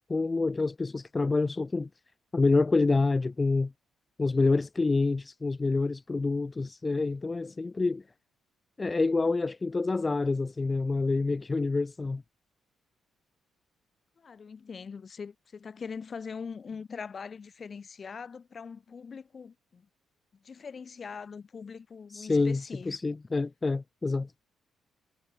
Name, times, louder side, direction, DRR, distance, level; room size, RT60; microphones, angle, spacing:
voice 1, 0.0-1.9 2.3-3.7 4.2-8.0 8.8-12.2 22.1-24.3, left 3 dB, 25° left, 0.6 m, -27 dB
voice 2, 14.2-19.9 20.3-23.0, left 5 dB, 40° left, 1.8 m, -42 dB
cardioid pair, 90°, 0 cm